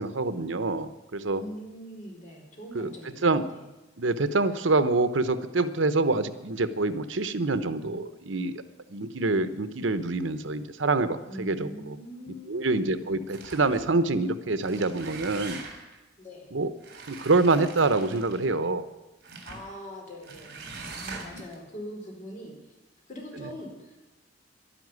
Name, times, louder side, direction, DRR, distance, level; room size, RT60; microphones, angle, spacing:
voice 1, 0.0-1.4 2.7-2.9 3.2-3.5 4.0-8.6 8.9-12.0 12.5-15.6 16.5-16.7 17.1-18.9 21.3-21.4, right 3 dB, 80° right, 12 dB, 0.9 m, -26 dB
voice 2, 1.4-3.6 11.3-12.7 12.9-13.1 16.2-16.5 19.4-22.7 23.1-24.1, equal, 40° left, 0 dB, 4.5 m, -42 dB
sound 1, 13.3-13.9 14.5-16.0 16.8-18.5 19.2-19.7 20.2-21.6, right 4 dB, 60° right, 3.6 m, -42 dB
11.5 x 11.5 x 9.6 m, 1.0 s
head